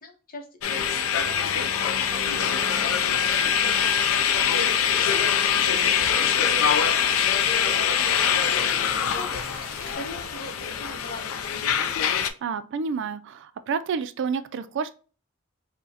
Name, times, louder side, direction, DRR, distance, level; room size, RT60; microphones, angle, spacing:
voice 1, 0.0-7.8 8.2-9.4 9.9-11.8, equal, 45° left, 0.8 m, -42 dB
sound 1, 0.6-12.3, left 8 dB, 80° left, 0.4 m, -23 dB
sound 2, 2.1-10.0, right 1 dB, 25° right, 1.5 m, -43 dB
voice 2, 12.2-14.9, right 5 dB, 60° right, 0.3 m, -29 dB
4.6 x 2.1 x 2.7 m
head